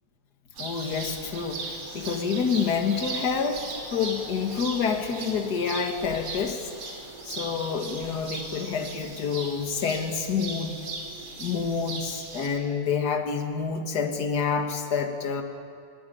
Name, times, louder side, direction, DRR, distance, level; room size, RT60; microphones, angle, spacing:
voice 1, 0.6-3.6 3.9-6.7 7.3-10.8 11.4-15.4, left 6 dB, 40° left, 5 dB, 2.0 m, -28 dB
sound 1, 0.6-12.5, right 3 dB, 45° right, 3.8 m, -38 dB
22.5 x 17.5 x 9.5 m, 2.4 s
omnidirectional pair, 3.4 m